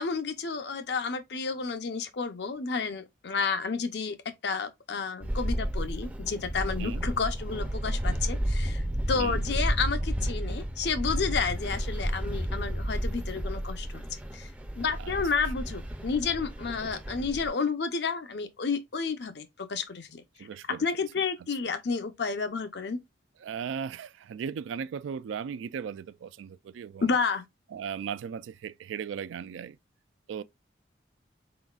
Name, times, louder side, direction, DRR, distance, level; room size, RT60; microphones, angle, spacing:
voice 1, 0.0-4.2 4.4-8.8 9.1-14.1 14.3-20.2 20.7-23.0 27.0-27.5, left 5 dB, 60° left, 0.6 m, -31 dB
sound 1, 5.2-17.5, equal, 5° right, 0.4 m, -32 dB
voice 2, 20.4-20.9 23.4-27.2 27.7-29.8 30.3-30.4, right 7 dB, 80° right, 0.3 m, -37 dB
4.0 x 3.9 x 2.3 m
head